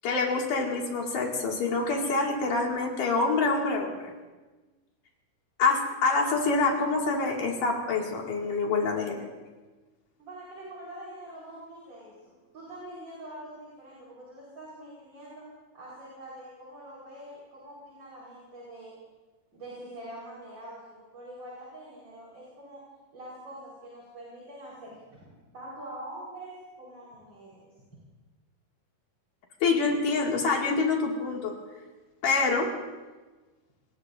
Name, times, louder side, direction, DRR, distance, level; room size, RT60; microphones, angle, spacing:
voice 1, 0.0-4.1 5.6-9.2 29.6-31.5 32.2-32.7, left 3 dB, 60° left, -1 dB, 3.6 m, -26 dB
voice 2, 10.2-15.4 15.7-18.9 19.5-22.8 23.1-25.2 25.5-26.5 26.8-27.6, right 1 dB, 30° right, -6 dB, 5.0 m, -44 dB
26.5 x 19.5 x 2.6 m, 1.3 s
omnidirectional pair, 4.4 m